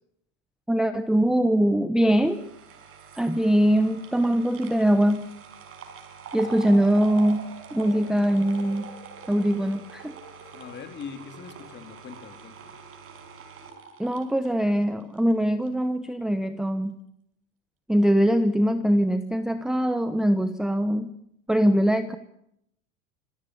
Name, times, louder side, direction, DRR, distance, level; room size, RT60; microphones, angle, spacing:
voice 1, 0.7-2.4 3.2-5.3 6.3-8.9 9.3-10.1 14.0-17.0 17.9-21.1 21.5-22.2, equal, ahead, 10 dB, 0.9 m, -22 dB
sound 1, 2.1-15.3 15.7-15.8, right 5 dB, 35° right, 5.5 m, -44 dB
voice 2, 6.4-6.8 10.4-12.7, left 7 dB, 30° left, 8 dB, 3.3 m, -42 dB
26.5 x 15.0 x 9.7 m, 0.77 s
supercardioid pair, 125°, 37 cm